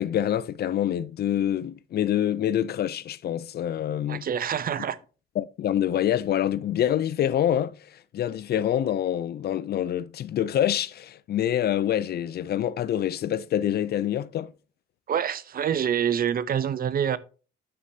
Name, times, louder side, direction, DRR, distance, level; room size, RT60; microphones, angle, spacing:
voice 1, 0.0-4.2 5.4-14.5, left 10 dB, 55° left, 0.4 m, -26 dB
voice 2, 4.1-5.0 15.1-17.2, right 8 dB, 50° right, 0.6 m, -26 dB
9.3 x 6.5 x 2.7 m
cardioid pair, 90°, 20 cm